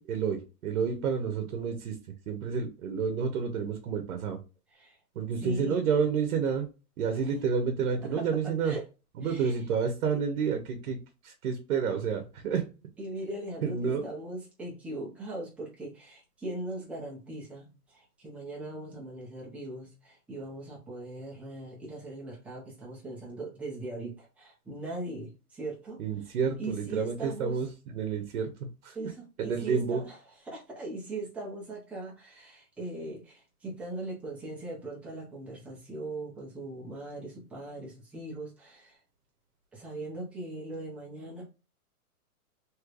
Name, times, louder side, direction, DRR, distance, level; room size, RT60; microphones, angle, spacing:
voice 1, 0.0-2.0 2.3-4.4 5.1-6.7 7.0-8.8 9.2-11.0 11.2-12.7 13.6-14.0 26.0-29.1 29.4-30.0, right 6 dB, 55° right, 1.0 m, -30 dB
voice 2, 5.4-5.9 7.1-7.3 8.1-8.3 8.6-8.8 9.2-9.6 10.1-10.2 13.0-26.0 26.6-27.6 28.9-30.2 30.4-39.0 39.7-41.4, right 2 dB, 5° right, 0.6 m, -40 dB
3.2 x 3.1 x 2.4 m
hypercardioid pair, 150°, 46 cm